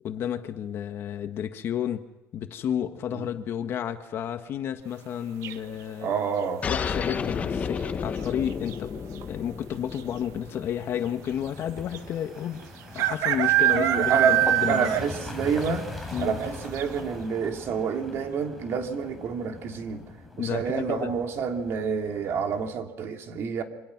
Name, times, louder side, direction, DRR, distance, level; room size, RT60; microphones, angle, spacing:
voice 1, 0.0-2.0 2.3-6.1 6.6-8.9 9.3-12.6 12.9-15.1 16.1-16.4 20.4-21.1, left 9 dB, 50° left, 1.6 m, -31 dB
sound 1, 5.4-5.9 7.7-8.1 8.4-8.5 8.7-9.2 10.0-10.1 10.3-10.4 11.9-12.0 13.0-15.3 15.6-15.7 16.2-16.3 16.8-16.9, right 13 dB, 70° right, 1.5 m, -24 dB
voice 2, 6.0-6.6 13.7-15.9 16.2-20.0 20.4-23.6, right 6 dB, 50° right, 2.9 m, -28 dB
sound 2, 6.6-11.7, left 6 dB, 25° left, 1.1 m, -32 dB
sound 3, 10.9-22.8, left 1 dB, ahead, 4.4 m, -41 dB
27.5 x 25.5 x 6.1 m
cardioid pair, 150°, 5 cm